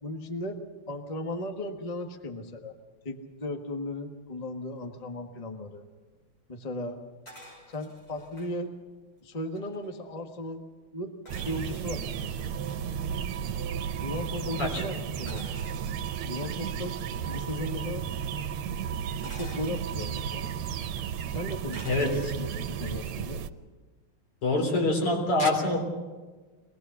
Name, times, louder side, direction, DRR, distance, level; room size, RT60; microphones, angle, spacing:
voice 1, 0.0-0.6 0.9-2.7 3.0-5.8 6.5-7.0 7.7-8.8 9.2-10.6 10.9-12.4 14.0-15.4 16.2-17.0 17.2-18.1 19.2-20.5 21.3-21.8 22.4-23.4, left 1 dB, 20° left, 4 dB, 1.2 m, -36 dB
sound 1, 7.3-8.5 9.1-9.2 9.4-10.0 11.3-12.8 15.3-16.3 17.2-17.5 19.2-20.5 21.7-22.5 23.0-23.3, equal, 45° left, 6.7 m, -50 dB
sound 2, 11.3-23.5, right 8 dB, 75° right, 1.7 m, -34 dB
voice 2, 21.8-22.3 24.4-25.8, left 2 dB, 85° left, 1 dB, 4.7 m, -25 dB
23.0 x 18.5 x 6.9 m, 1.3 s
omnidirectional pair, 2.4 m